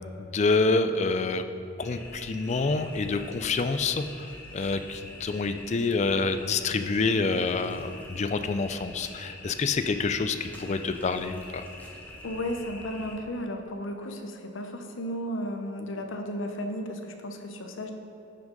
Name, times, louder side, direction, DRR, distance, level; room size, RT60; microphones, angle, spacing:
voice 1, 0.2-1.4 1.8-11.7, left 3 dB, 35° left, 9 dB, 0.4 m, -27 dB
sound 1, 1.8-13.2, left 1 dB, 10° left, 0.9 m, -45 dB
voice 2, 12.2-17.9, equal, 75° left, 4 dB, 0.8 m, -34 dB
10.5 x 6.2 x 3.9 m, 2.9 s
head